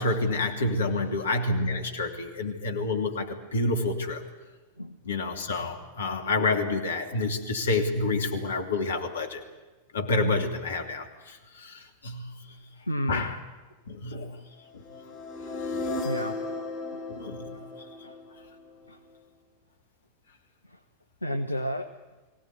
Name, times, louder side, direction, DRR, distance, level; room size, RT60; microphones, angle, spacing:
voice 1, 0.0-4.2 5.0-9.4 9.9-12.3 13.1-13.4 13.9-14.4 17.1-17.5, left 2 dB, 65° left, 5 dB, 2.8 m, -28 dB
voice 2, 12.9-13.3 16.0-16.6 16.9-17.0 17.5-17.6 18.0-18.1 18.9-19.0 20.7-20.8 21.2-21.9, equal, 85° left, 8 dB, 1.0 m, -32 dB
sound 1, 14.8-18.9, left 2 dB, 35° left, 4.9 m, -35 dB
23.5 x 17.5 x 9.7 m, 1.2 s
figure-of-eight pair, 90°, 0 cm